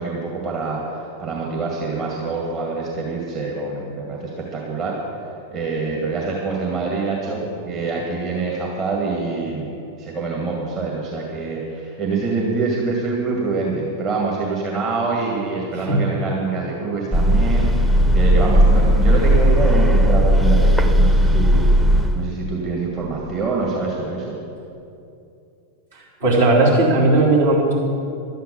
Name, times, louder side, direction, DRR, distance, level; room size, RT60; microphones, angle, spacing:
voice 1, 0.0-5.0 5.5-21.7 22.1-24.4, right 4 dB, 35° right, -3 dB, 2.0 m, -25 dB
voice 2, 15.7-16.1 25.9-27.7, right 2 dB, 70° right, -6 dB, 3.8 m, -17 dB
sound 1, 17.1-22.4, equal, 10° right, 0.7 m, -15 dB
12.5 x 9.2 x 6.8 m, 2.7 s
figure-of-eight pair, 90°, 0 cm